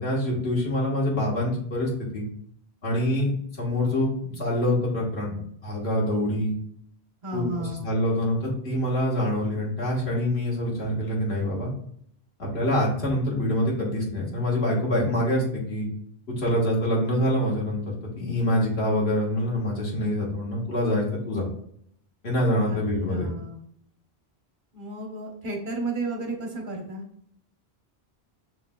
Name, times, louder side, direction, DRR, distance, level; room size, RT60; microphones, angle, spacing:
voice 1, 0.0-2.2 2.8-3.3 3.6-5.4 5.6-6.5 7.3-11.7 12.4-15.9 16.4-21.4 22.2-23.3, left 1 dB, 80° left, -4 dB, 1.8 m, -25 dB
voice 2, 7.2-7.9 22.6-23.7 24.7-27.0, right 2 dB, 50° right, -1 dB, 1.2 m, -33 dB
6.9 x 3.2 x 2.2 m, 0.67 s
omnidirectional pair, 1.1 m